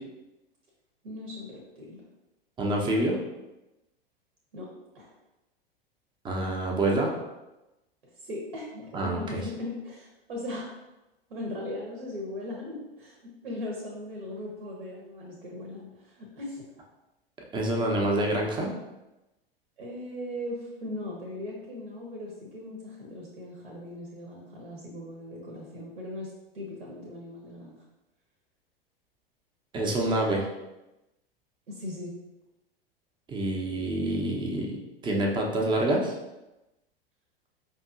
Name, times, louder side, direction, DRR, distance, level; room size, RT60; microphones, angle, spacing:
voice 1, 1.0-2.0 4.5-4.7 4.9-5.1 8.2-10.7 11.3-16.6 19.8-27.8 31.7-32.2, left 1 dB, 70° right, -2 dB, 1.0 m, -38 dB
voice 2, 2.6-3.2 6.2-7.1 8.9-9.4 17.4-18.7 29.7-30.5 33.3-36.1, right 1 dB, 15° right, 0 dB, 0.6 m, -27 dB
5.1 x 2.9 x 2.5 m, 0.99 s
figure-of-eight pair, 90°, 30 cm